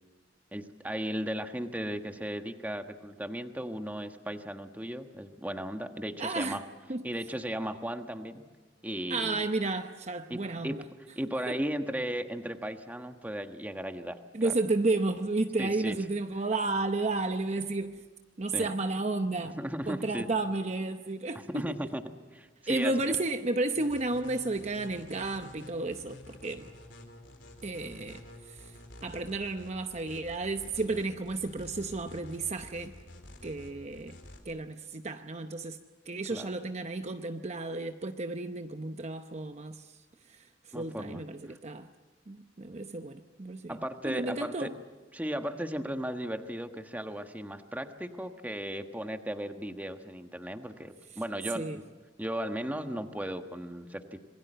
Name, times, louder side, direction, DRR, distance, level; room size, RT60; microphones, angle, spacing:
voice 1, 0.5-6.6 7.0-8.4 8.8-9.5 10.3-10.4 10.6-10.8 11.2-14.5 15.6-16.0 18.5-18.7 19.6-20.3 21.5-22.0 22.3-23.2 36.3-36.5 40.7-41.2 41.5-41.6 43.7-44.7 45.1-51.8 52.2-54.2, equal, 10° right, 1.3 m, -36 dB
voice 2, 6.2-6.6 6.9-7.0 9.1-10.8 11.5-11.6 14.3-18.0 18.4-21.6 22.7-26.7 27.6-28.2 28.5-28.7 29.0-32.9 33.4-34.2 34.5-35.8 36.1-40.0 40.3-40.4 40.7-41.9 42.3-43.8 44.0-44.7 51.5-51.8, right 2 dB, 35° right, 0.8 m, -32 dB
sound 1, 23.7-34.4, left 1 dB, 75° left, 3.6 m, -50 dB
26.5 x 21.5 x 7.9 m
head